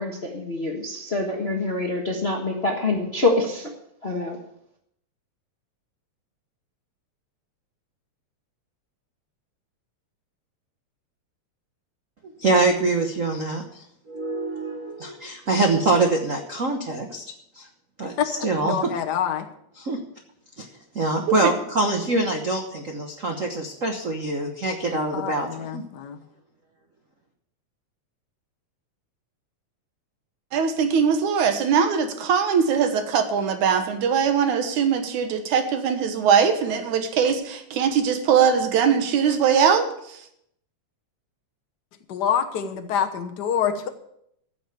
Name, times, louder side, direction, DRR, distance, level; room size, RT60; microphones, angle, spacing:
voice 1, 0.0-3.7 4.0-4.4, left 2 dB, 35° left, 0 dB, 1.0 m, -25 dB
voice 2, 12.4-17.2 17.5-17.7 18.0-19.0 19.8-20.0 20.6-20.7 20.9-25.8, right 2 dB, 65° right, 3 dB, 0.7 m, -24 dB
voice 3, 18.6-19.5 25.1-26.2 42.1-43.9, left 8 dB, 60° left, 5 dB, 1.1 m, -26 dB
voice 4, 30.5-40.2, right 7 dB, 85° right, 7 dB, 2.7 m, -21 dB
14.5 x 7.1 x 6.8 m, 0.75 s
omnidirectional pair, 3.3 m